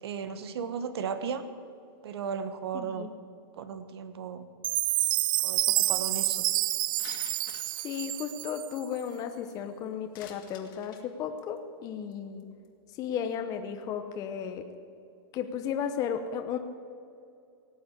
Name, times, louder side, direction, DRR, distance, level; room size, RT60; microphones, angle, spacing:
voice 1, 0.0-1.4 2.0-3.1 3.6-4.5 5.4-6.4, right 6 dB, 75° right, 10 dB, 1.3 m, -35 dB
voice 2, 2.7-3.1 7.8-12.5 13.0-14.7 15.3-16.6, left 8 dB, 25° left, 6 dB, 0.8 m, -34 dB
Chime, 4.6-8.9, right 16 dB, 55° right, 0.4 m, -28 dB
sound 1, 7.0-9.1 10.1-11.0 11.4-11.6 12.1-12.2 12.4-12.7 13.0-13.1, left 9 dB, 55° left, 2.1 m, -49 dB
18.0 x 7.7 x 8.3 m, 2.5 s
supercardioid pair, 150°, 13 cm